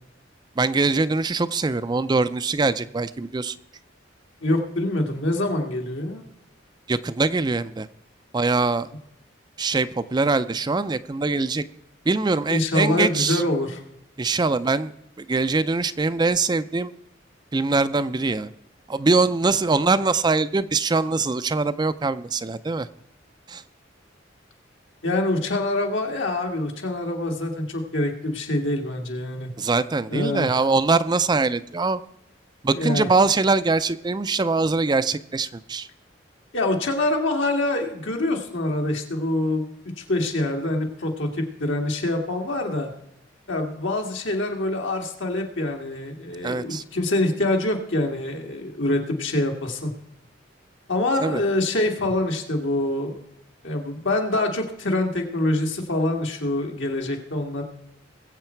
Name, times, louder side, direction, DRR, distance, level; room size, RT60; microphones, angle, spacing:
voice 1, 0.6-3.6 6.9-7.9 8.3-8.9 9.6-11.6 12.1-13.4 14.2-14.9 15.2-16.9 17.5-18.5 18.9-22.9 23.5-23.6 29.6-32.0 32.6-35.9 46.4-46.8 51.2-51.4, right 3 dB, 20° right, 13 dB, 0.4 m, -23 dB
voice 2, 4.4-6.2 12.5-13.8 25.0-29.5 30.1-30.6 32.7-33.1 36.5-42.9 43.5-49.9 50.9-53.1 53.6-57.6, left 1 dB, 75° left, 2 dB, 2.2 m, -25 dB
20.5 x 7.9 x 4.5 m, 0.81 s
head